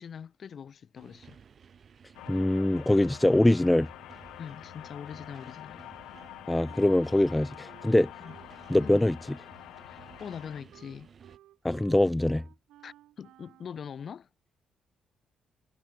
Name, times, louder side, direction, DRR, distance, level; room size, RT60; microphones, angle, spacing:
voice 1, 0.0-1.4 4.4-5.9 8.2-8.3 8.8-9.0 9.8-11.1 12.8-14.3, left 7 dB, 50° left, 2.5 m, -43 dB
sound 1, 1.0-11.4, right 7 dB, 50° right, 3.6 m, -54 dB
sound 2, 2.1-10.6, left 15 dB, 90° left, 6.6 m, -47 dB
voice 2, 2.3-3.9 6.5-8.1 8.7-9.4 11.6-12.4, left 1 dB, 10° left, 0.4 m, -23 dB
Wind instrument woodwind instrument, 6.1-9.0 9.3-13.8, right 14 dB, 85° right, 5.0 m, -57 dB
cardioid pair, 90°, 0 cm